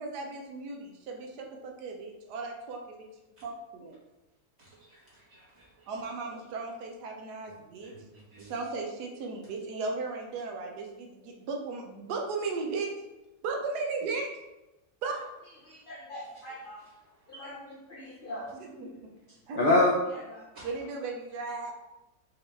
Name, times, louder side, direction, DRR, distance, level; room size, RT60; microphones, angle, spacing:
voice 1, 0.0-3.1 3.4-4.0 5.9-7.9 8.5-12.9 13.4-14.3 15.0-15.3 18.5-18.9 19.5-19.6 20.6-21.7, right 4 dB, 80° right, 2 dB, 1.2 m, -36 dB
voice 2, 4.6-5.9 7.8-8.6 16.2-16.5 16.8-17.0 20.5-20.7, right 2 dB, 40° right, -8 dB, 2.0 m, -55 dB
voice 3, 15.9-16.8 17.3-17.6 17.9-18.5 19.6-20.4, left 2 dB, 85° left, -3 dB, 0.4 m, -28 dB
5.3 x 2.8 x 3.3 m, 1.0 s
omnidirectional pair, 1.7 m